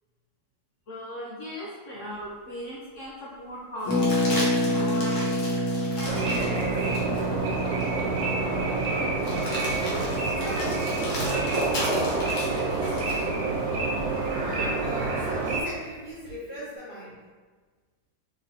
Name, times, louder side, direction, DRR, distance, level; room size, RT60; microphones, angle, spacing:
voice 1, 0.9-6.6, equal, 65° left, -5 dB, 0.7 m, -38 dB
sound 1, 2.2-2.3 3.8-7.3 7.8-7.9 9.2-13.3 15.5-16.3, left 1 dB, 90° left, 1.7 m, -36 dB
Harp, 3.8-13.5 13.7-13.8 14.0-14.3, equal, 35° left, 1.0 m, -30 dB
sound 2, 6.0-15.6, right 3 dB, 70° right, 1.1 m, -27 dB
voice 2, 9.8-13.0 14.4-17.2, equal, 50° right, -9 dB, 0.5 m, -38 dB
3.7 x 3.7 x 2.7 m, 1.4 s
omnidirectional pair, 1.9 m